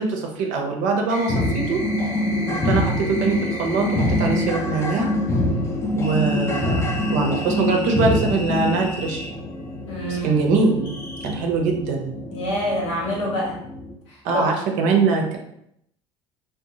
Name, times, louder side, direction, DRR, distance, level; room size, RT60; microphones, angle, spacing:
voice 1, 0.0-1.8 2.5-5.1 6.0-9.4 10.2-10.9 11.2-12.1 14.2-15.4, right 4 dB, 60° right, 1 dB, 0.6 m, -22 dB
sound 1, 1.1-4.5 6.0-9.3 10.8-11.3, left 1 dB, 60° left, 0.7 m, -35 dB
sound 2, 1.3-13.9, left 1 dB, 20° left, 0.5 m, -25 dB
voice 2, 9.9-10.5 12.3-13.6 14.1-14.4, equal, 80° left, -4 dB, 1.0 m, -27 dB
2.8 x 2.1 x 2.6 m, 0.73 s
hypercardioid pair, 70°, 15 cm